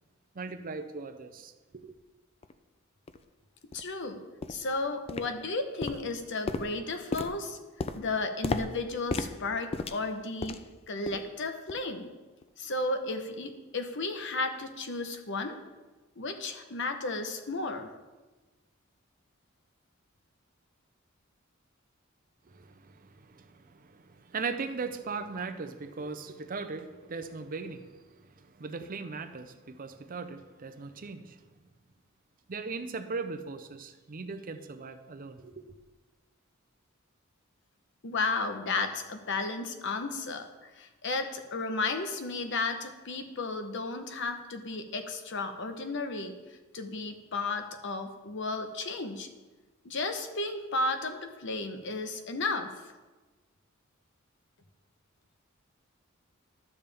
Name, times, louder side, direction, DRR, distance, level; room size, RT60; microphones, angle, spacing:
voice 1, 0.3-2.0 22.4-31.5 32.5-35.7, right 4 dB, 45° right, 0.6 m, -39 dB
sound 1, 2.4-2.5 3.1-3.2 3.7-3.9 4.4-4.7 5.1-5.5 5.8-10.8 11.1-11.3 11.7-11.9 12.4-12.5, left 3 dB, 30° left, 0.4 m, -36 dB
voice 2, 3.7-4.2 4.5-7.6 7.9-12.1 12.6-15.6 16.2-17.9 38.0-49.3 49.8-52.9, left 3 dB, 60° left, 0.9 m, -33 dB
12.0 x 7.2 x 3.4 m
head